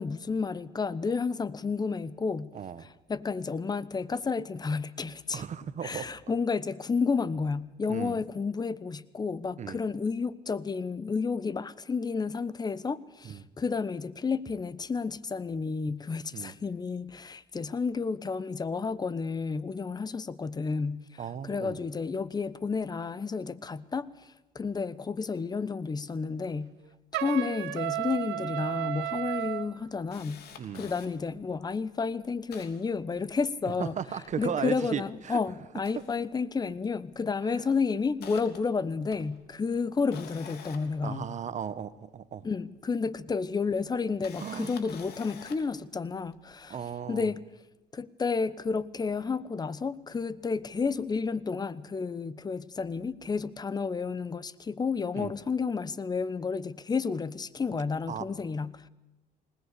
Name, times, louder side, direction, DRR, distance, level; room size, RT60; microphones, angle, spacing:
voice 1, 0.0-2.5 3.1-5.4 5.8-26.7 27.1-30.4 30.7-34.0 34.4-41.2 42.4-46.8 47.1-47.4 47.9-58.8, left 5 dB, 25° left, 1.0 m, -31 dB
voice 2, 2.5-2.8 5.3-6.1 7.9-8.2 9.6-9.8 13.2-13.4 16.3-16.5 21.2-21.8 30.6-30.9 33.8-35.4 35.9-36.0 41.0-42.4 44.4-44.7 46.7-47.3 55.1-55.3 58.1-58.2, right 8 dB, 45° right, 1.2 m, -36 dB
Trumpet, 27.1-29.7, right 15 dB, 85° right, 1.3 m, -33 dB
Camera, 28.9-29.0 29.4-31.1 31.7-31.8 32.1-33.7 34.0-35.3 35.7-36.8 37.1-37.4 37.8-41.8 42.9-43.0 44.0-45.8 46.3-46.5, left 7 dB, 70° left, 3.2 m, -49 dB
20.0 x 19.5 x 8.3 m
cardioid pair, 110°, 17 cm